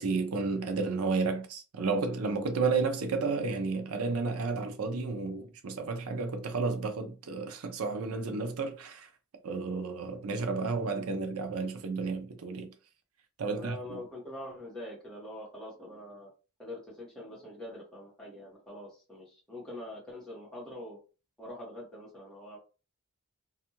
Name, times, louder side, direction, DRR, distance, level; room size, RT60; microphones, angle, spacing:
voice 1, 0.0-9.1 9.4-12.7 13.4-14.0, right 4 dB, 75° right, 0.5 m, -32 dB
voice 2, 13.4-16.3 16.6-21.0 21.4-22.6, left 1 dB, 5° left, 1.2 m, -44 dB
2.6 x 2.4 x 2.8 m
head